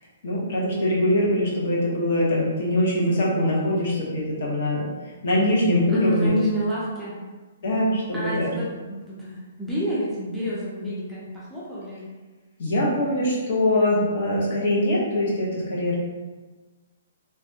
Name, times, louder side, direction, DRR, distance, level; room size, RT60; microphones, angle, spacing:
voice 1, 0.2-4.9 5.2-6.3 7.6-8.5 12.6-16.0, left 1 dB, 50° left, -4 dB, 0.9 m, -23 dB
voice 2, 5.9-7.1 8.1-12.0, equal, ahead, -10 dB, 0.5 m, -29 dB
3.3 x 2.2 x 2.7 m, 1.3 s
hypercardioid pair, 170°, 0 cm